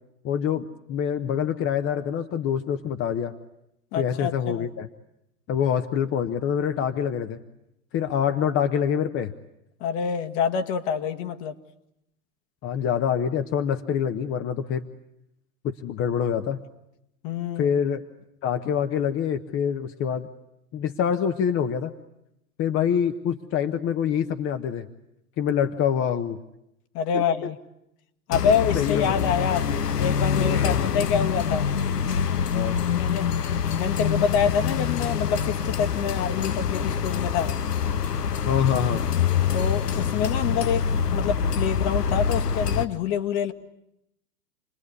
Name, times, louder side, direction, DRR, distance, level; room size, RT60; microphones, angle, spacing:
voice 1, 0.2-3.3 3.9-4.9 5.5-7.4 7.9-9.3 12.6-14.9 15.6-16.6 17.6-18.0 18.4-20.3 20.7-21.9 22.6-24.9 25.4-26.4 27.1-27.2 28.7-29.1 30.6-30.8 32.5-32.8 38.4-39.0, left 8 dB, 25° left, 9 dB, 1.0 m, -25 dB
voice 2, 3.9-4.7 9.8-11.5 17.2-17.7 26.9-27.6 28.3-29.7 30.0-31.7 32.9-33.3 33.8-37.5 39.5-40.8 41.1-43.5, left 7 dB, 45° left, 7 dB, 1.9 m, -26 dB
sound 1, 28.3-42.8, left 7 dB, 90° left, 1.1 m, -25 dB
28.5 x 20.5 x 9.6 m, 0.84 s
hypercardioid pair, 110°, 46 cm